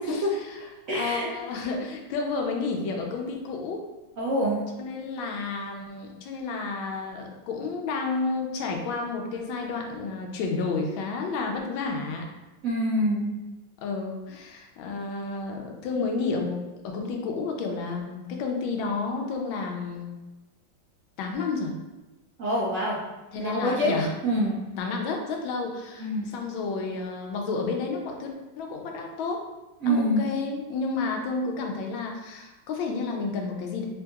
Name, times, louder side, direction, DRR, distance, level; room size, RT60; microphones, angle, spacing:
voice 1, 0.1-0.6 0.9-3.9 4.8-12.3 13.8-20.2 21.2-21.7 23.3-24.1 24.8-29.4 29.9-33.9, left 4 dB, 90° left, 2 dB, 1.4 m, -31 dB
voice 2, 0.9-1.3 4.2-4.6 12.6-13.4 22.4-23.0 23.3-23.9 24.2-24.6 26.0-26.3 29.8-30.2, equal, 60° right, -8 dB, 0.9 m, -25 dB
3.7 x 2.7 x 2.3 m, 1.1 s
omnidirectional pair, 2.1 m